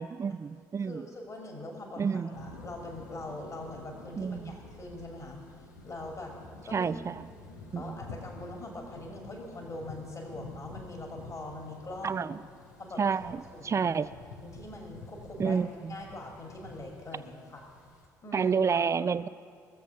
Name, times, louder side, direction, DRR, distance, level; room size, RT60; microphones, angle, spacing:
voice 1, 0.0-1.1 2.0-2.3 4.2-4.6 6.7-7.2 7.7-8.0 12.0-12.4 13.0-14.1 15.4-16.0 18.3-19.3, right 6 dB, 30° right, 15 dB, 0.5 m, -29 dB
voice 2, 0.8-5.4 5.8-6.3 6.6-6.9 7.7-12.2 12.8-13.2 13.5-13.9 14.4-15.6 15.9-17.7 18.2-18.9, left 2 dB, 35° left, 0 dB, 2.4 m, -42 dB
sound 1, 2.3-18.1, left 2 dB, 85° left, 1.2 m, -49 dB
21.0 x 7.3 x 5.8 m, 2.1 s
hypercardioid pair, 50°, 9 cm